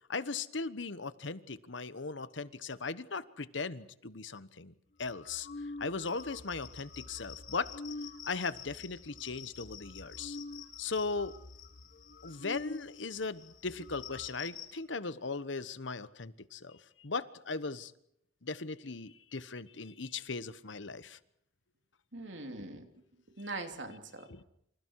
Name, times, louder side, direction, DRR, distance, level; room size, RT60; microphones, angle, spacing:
voice 1, 0.1-4.7 5.0-5.5 5.8-7.7 8.2-10.4 10.8-11.3 12.2-17.9 18.4-21.2 24.3-24.4, left 4 dB, 70° left, 14 dB, 1.2 m, -38 dB
sound 1, 5.2-12.9 13.2-13.3 13.5-14.3, left 2 dB, 50° left, 1.4 m, -47 dB
sound 2, 6.0-14.7, left 11 dB, 90° left, 3.8 m, -51 dB
voice 2, 22.1-24.4, right 2 dB, 70° right, 5 dB, 3.2 m, -43 dB
28.0 x 27.0 x 4.8 m, 0.73 s
head